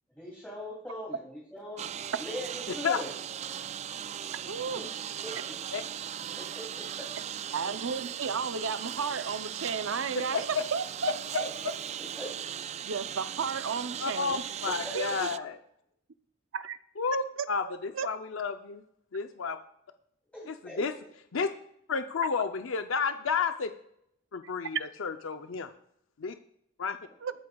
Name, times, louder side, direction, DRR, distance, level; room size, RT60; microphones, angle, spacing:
voice 1, 0.1-1.9 2.2-3.1 4.7-4.9 5.2-5.3 6.3-7.1 11.4-11.5 12.1-12.3 14.6-14.9 20.3-20.8, equal, 5° left, -6 dB, 2.8 m, -41 dB
Engine, 1.8-15.4, right 9 dB, 35° right, 0.3 m, -38 dB
voice 2, 4.5-4.9 7.5-11.4 12.8-14.4 14.9-15.3 16.5-16.8 17.4-18.1 27.2-27.3, right 5 dB, 75° right, 12 dB, 0.6 m, -33 dB
voice 3, 14.0-15.6 17.0-18.8 19.1-19.6 20.5-20.9 21.3-21.5 21.9-23.7 24.3-25.7 26.2-26.3 26.8-27.0, left 5 dB, 80° left, 8 dB, 0.6 m, -31 dB
21.5 x 8.5 x 2.3 m, 0.73 s
head